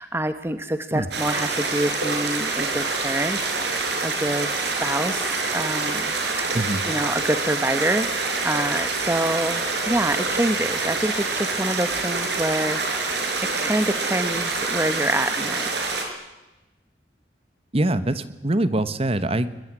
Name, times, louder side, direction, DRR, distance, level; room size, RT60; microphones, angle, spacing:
voice 1, 0.0-6.0 6.4-6.6 6.9-12.8 13.6-16.0, right 1 dB, 15° right, 10 dB, 1.0 m, -26 dB
sound 1, 1.1-16.0, right 3 dB, 70° right, 5.7 m, -26 dB
voice 2, 17.7-19.6, right 1 dB, 35° right, 13 dB, 1.4 m, -23 dB
22.5 x 21.5 x 9.9 m, 1.0 s
head